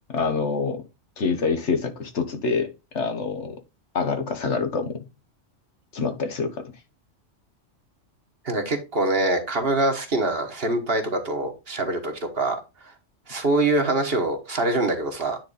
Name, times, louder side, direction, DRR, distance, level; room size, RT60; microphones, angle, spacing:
voice 1, 0.1-0.8 1.2-2.7 2.9-3.5 3.9-5.1 5.9-6.6, left 4 dB, 65° left, 1.4 m, -26 dB
voice 2, 8.4-12.6 13.3-15.4, right 2 dB, 50° right, 1.6 m, -24 dB
9.4 x 4.1 x 4.1 m
omnidirectional pair, 1.3 m